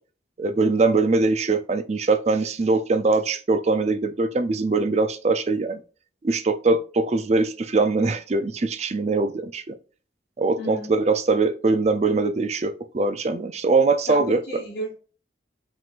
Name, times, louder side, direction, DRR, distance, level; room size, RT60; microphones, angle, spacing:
voice 1, 0.4-5.8 6.2-9.8 10.4-14.4, right 3 dB, 35° right, 0.4 m, -22 dB
voice 2, 10.6-10.9 14.1-14.9, equal, 45° left, 1.2 m, -33 dB
5.2 x 3.8 x 2.5 m
head